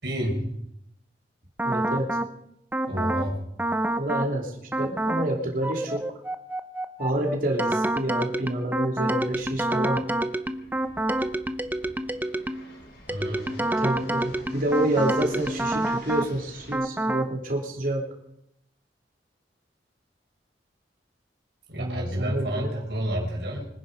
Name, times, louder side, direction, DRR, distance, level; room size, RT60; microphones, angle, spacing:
voice 1, 0.0-0.4 2.9-3.4 13.1-13.7 21.7-23.7, equal, 70° right, 1 dB, 4.8 m, -30 dB
sound 1, 1.6-2.3 2.7-3.3 3.6-4.3 4.7-5.3 5.6-12.7 13.1-16.3 16.7-17.3, right 1 dB, 10° right, 0.7 m, -27 dB
voice 2, 1.6-2.2 4.0-6.1 7.0-10.0 13.8-18.0 21.8-22.8, right 1 dB, 50° right, 1 dB, 3.2 m, -28 dB
Fixed-wing aircraft airplane, 9.3-16.7, left 1 dB, 65° left, 3.8 m, -48 dB
24.5 x 10.5 x 5.1 m, 0.78 s
head